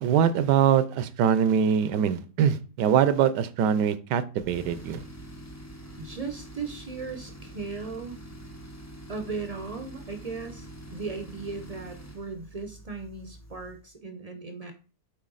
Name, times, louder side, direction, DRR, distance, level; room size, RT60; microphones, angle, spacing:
voice 1, 0.0-5.0, right 8 dB, 85° right, 13 dB, 1.2 m, -23 dB
Tools, 4.4-13.9, right 1 dB, 15° left, 0.5 m, -45 dB
voice 2, 6.0-8.2 9.1-14.7, right 4 dB, 70° right, 6 dB, 0.3 m, -37 dB
7.3 x 4.7 x 3.9 m, 0.37 s
omnidirectional pair, 1.8 m